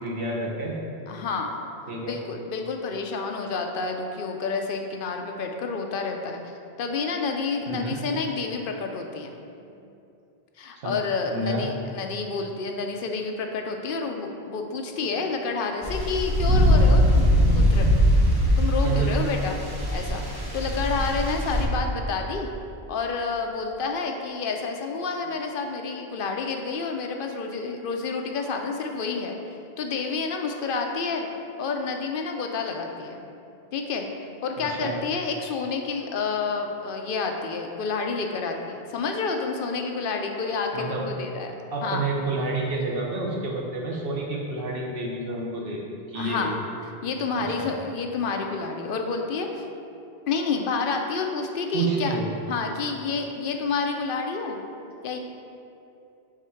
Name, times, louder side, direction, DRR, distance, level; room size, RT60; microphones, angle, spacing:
voice 1, 0.0-0.8 1.9-2.2 7.7-8.0 9.6-9.7 10.7-10.9 11.3-11.7 18.8-19.1 34.6-35.0 40.7-41.1 41.7-45.8 46.1-46.5 47.4-47.7 51.7-52.3, right 3 dB, 65° right, -2 dB, 1.1 m, -29 dB
voice 2, 1.1-1.6 2.1-6.4 6.8-9.4 10.6-17.9 18.6-19.6 19.9-22.5 22.9-29.4 29.8-31.3 31.6-33.2 33.7-34.1 34.4-42.1 46.1-46.6 47.0-49.6 50.3-52.2 52.5-54.6 55.0-55.2, left 4 dB, 65° left, 3 dB, 0.7 m, -29 dB
sound 1, 15.8-21.6, equal, 25° right, 0.7 m, -21 dB
5.0 x 3.6 x 5.6 m, 2.7 s
omnidirectional pair, 1.1 m